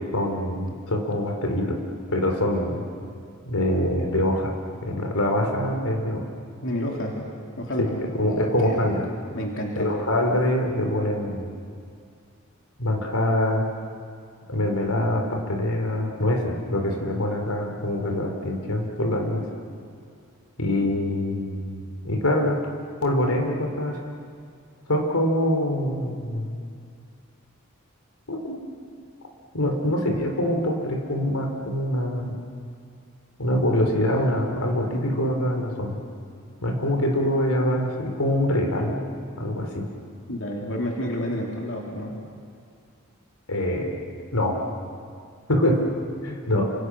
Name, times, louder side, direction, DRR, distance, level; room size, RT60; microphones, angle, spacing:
voice 1, 0.1-1.8 2.1-2.8 3.5-4.5 4.8-6.3 7.8-7.9 8.2-9.0 9.8-11.5 12.8-13.7 14.5-19.5 20.6-22.6 23.0-24.1 24.9-26.6 28.3-28.6 29.5-32.3 33.4-36.0 36.6-39.0 39.4-39.9 43.5-44.0 44.3-44.6 45.5-45.9 46.2-46.7, left 1 dB, 85° left, 2 dB, 4.0 m, -24 dB
voice 2, 6.6-7.2 7.6-9.0 9.3-9.9 40.3-42.2, equal, 60° left, -1 dB, 3.3 m, -30 dB
29.5 x 27.0 x 6.4 m, 2.4 s
head